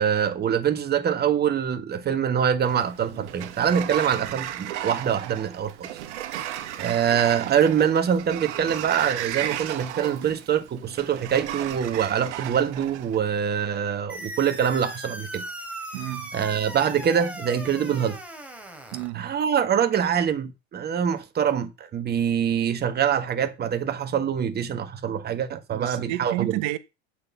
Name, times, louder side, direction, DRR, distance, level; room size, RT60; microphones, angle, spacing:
voice 1, 0.0-5.9 6.8-15.4 16.3-18.2 19.1-26.6, right 8 dB, 30° right, 1.6 m, -24 dB
Sliding door, 2.7-13.2, right 12 dB, 80° right, 1.5 m, -34 dB
sound 1, 14.1-19.1, right 1 dB, 5° right, 3.0 m, -38 dB
voice 2, 15.9-16.3 18.9-19.3 25.7-26.8, right 17 dB, 55° right, 1.4 m, -31 dB
8.0 x 6.8 x 6.9 m
supercardioid pair, 110°, 34 cm